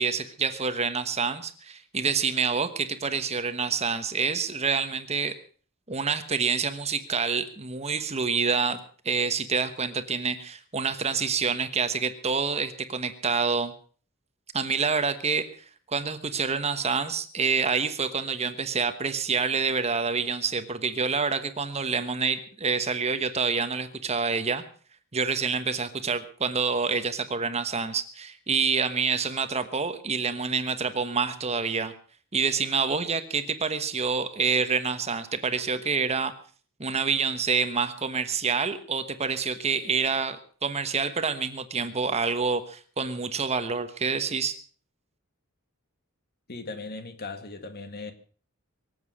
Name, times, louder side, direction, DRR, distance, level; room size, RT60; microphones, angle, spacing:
voice 1, 0.0-5.4 5.9-8.8 9.0-13.7 14.5-15.5 15.9-24.6 25.1-31.9 32.3-36.3 36.8-44.6, right 5 dB, 30° right, 1.2 m, -27 dB
voice 2, 46.5-48.1, left 3 dB, 50° left, 1.9 m, -38 dB
23.5 x 8.0 x 6.3 m
head